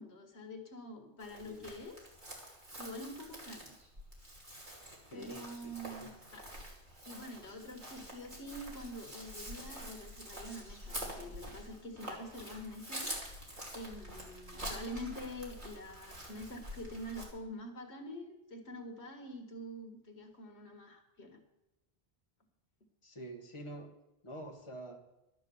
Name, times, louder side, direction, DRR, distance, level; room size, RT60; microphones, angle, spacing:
voice 1, 0.0-2.2 2.8-3.7 5.1-6.5 7.1-13.1 13.7-21.4, equal, 85° left, 4 dB, 2.0 m, -46 dB
Chirp tweet, 1.2-17.3, right 1 dB, 50° right, 3.1 m, -46 dB
voice 2, 5.1-6.1 23.0-23.9 24.2-25.1, right 1 dB, 30° left, 1 dB, 1.7 m, -47 dB
12.0 x 9.7 x 7.0 m, 0.93 s
omnidirectional pair, 1.1 m